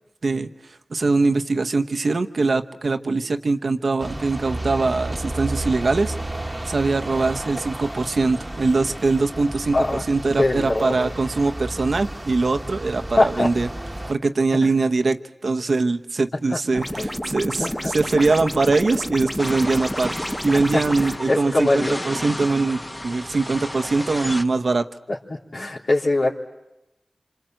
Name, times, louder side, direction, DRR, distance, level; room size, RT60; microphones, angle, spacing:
voice 1, 0.9-6.1 6.7-13.7 14.1-20.1 20.4-24.9, right 3 dB, 80° right, 7 dB, 1.1 m, -22 dB
sound 1, 4.0-14.1, right 1 dB, 25° right, 1.2 m, -32 dB
voice 2, 10.4-11.1 13.2-13.5 14.6-14.7 17.0-17.1 17.6-18.3 20.7-20.8 21.3-22.0 25.1-25.2 25.5-26.3, left 2 dB, 85° left, -4 dB, 3.4 m, -22 dB
sound 2, 16.8-21.2, equal, 5° left, 1.3 m, -30 dB
sound 3, 19.4-24.4, left 1 dB, 20° left, 1.1 m, -33 dB
27.0 x 27.0 x 7.8 m, 0.94 s
wide cardioid pair, 60°, 0 cm